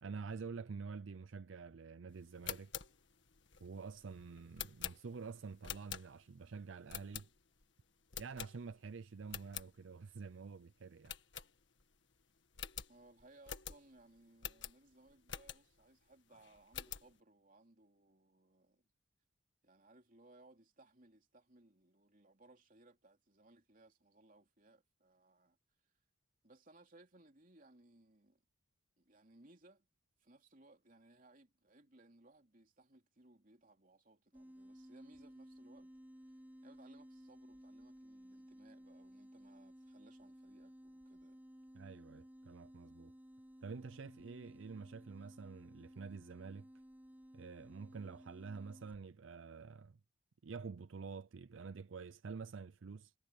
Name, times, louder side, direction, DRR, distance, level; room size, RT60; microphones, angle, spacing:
voice 1, 0.0-2.7 3.6-7.3 8.2-11.2 41.7-43.1 43.6-46.7 47.3-50.0 50.4-53.1, right 5 dB, 75° right, 0.5 m, -48 dB
sound 1, 2.3-6.4 6.9-7.6 8.1-8.9 9.2-9.7 10.1-10.2 10.5-10.6 11.0-12.0 12.2-12.3 12.5-15.9 16.3-17.1, left 9 dB, 65° left, 1.8 m, -47 dB
voice 2, 12.9-18.9 19.6-25.6 26.4-28.4 29.0-29.9 30.2-35.9 36.2-41.4, right 2 dB, 45° right, 3.3 m, -64 dB
sound 2, 34.3-49.1, equal, 10° right, 4.9 m, -57 dB
head